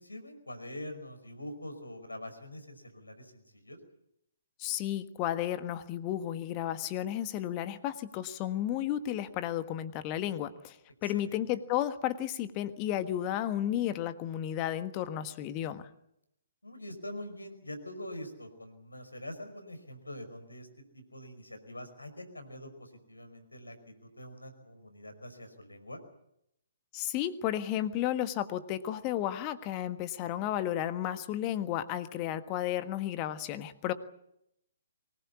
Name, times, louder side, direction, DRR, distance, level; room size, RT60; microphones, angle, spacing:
voice 1, 0.0-3.8 11.0-11.5 16.6-26.0, left 1 dB, 80° left, 8 dB, 5.3 m, -45 dB
voice 2, 4.6-10.8 11.0-15.8 26.9-33.9, left 12 dB, 25° left, 11 dB, 1.5 m, -33 dB
24.5 x 19.5 x 8.5 m, 0.80 s
figure-of-eight pair, 130°, 0 cm